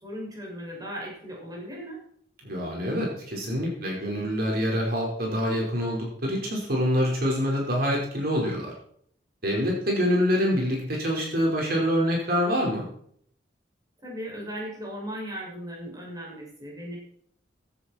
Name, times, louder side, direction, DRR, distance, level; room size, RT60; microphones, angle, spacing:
voice 1, 0.0-2.0 14.0-17.0, equal, 20° right, -3 dB, 6.7 m, -37 dB
voice 2, 2.4-8.7 9.4-12.9, equal, 60° right, -1 dB, 5.0 m, -26 dB
15.5 x 12.5 x 4.5 m, 0.63 s
head